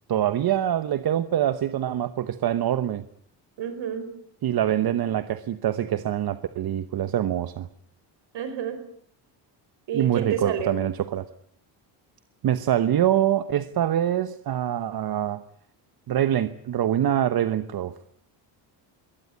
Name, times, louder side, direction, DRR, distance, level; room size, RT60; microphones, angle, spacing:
voice 1, 0.1-3.0 4.4-7.7 9.9-11.2 12.4-15.4 16.1-17.9, right 11 dB, 50° right, 12 dB, 1.1 m, -24 dB
voice 2, 3.6-4.1 8.3-8.8 9.9-10.8, right 7 dB, 65° right, 10 dB, 4.9 m, -30 dB
22.5 x 18.5 x 8.5 m, 0.66 s
cardioid pair, 110°, 46 cm